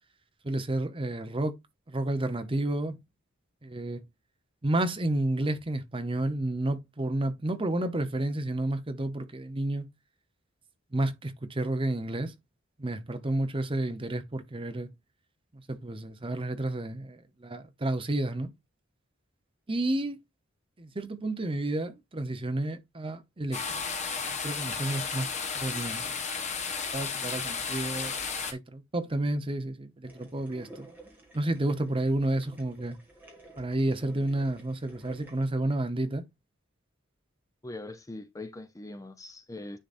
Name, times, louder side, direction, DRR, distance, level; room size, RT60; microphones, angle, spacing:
voice 1, 0.4-1.5 1.9-3.0 3.6-4.0 4.6-9.9 10.9-12.3 12.8-14.9 15.5-18.5 19.7-20.2 20.8-23.8 24.3-25.3 25.5-26.2 26.9-28.2 28.4-30.9 31.3-33.0 33.6-36.2, right 1 dB, 25° right, 0.8 m, -31 dB
sound 1, 23.5-28.5, left 5 dB, 35° left, 1.2 m, -33 dB
sound 2, 30.0-35.5, right 1 dB, 10° right, 2.1 m, -52 dB
voice 2, 37.6-39.8, left 2 dB, 15° left, 0.6 m, -41 dB
10.0 x 4.0 x 2.5 m
head